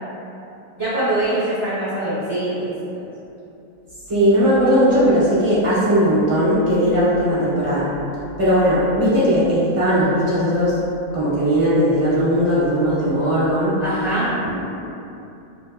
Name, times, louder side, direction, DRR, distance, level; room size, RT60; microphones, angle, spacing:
voice 1, 0.8-2.7 13.8-14.3, right 1 dB, 50° right, -13 dB, 0.9 m, -23 dB
voice 2, 4.1-7.8 8.4-10.8 11.1-13.8, equal, 20° right, -13 dB, 1.2 m, -18 dB
3.4 x 2.8 x 2.2 m, 2.7 s
omnidirectional pair, 1.9 m